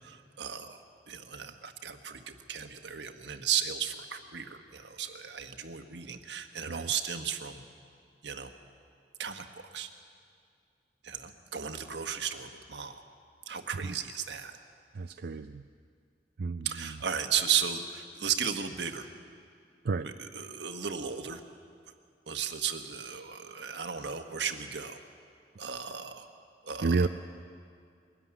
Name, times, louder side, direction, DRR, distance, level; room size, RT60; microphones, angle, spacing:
voice 1, 0.0-7.6 8.2-8.5 9.2-9.9 11.0-12.9 13.5-14.5 16.6-19.1 20.0-21.4 22.3-25.0 25.6-26.3 26.6-27.1, right 8 dB, 80° right, 7 dB, 1.4 m, -35 dB
voice 2, 15.0-15.6 16.4-16.7 19.9-20.1 26.8-27.1, right 4 dB, 60° right, 8 dB, 0.5 m, -29 dB
22.0 x 13.5 x 9.9 m, 2.3 s
head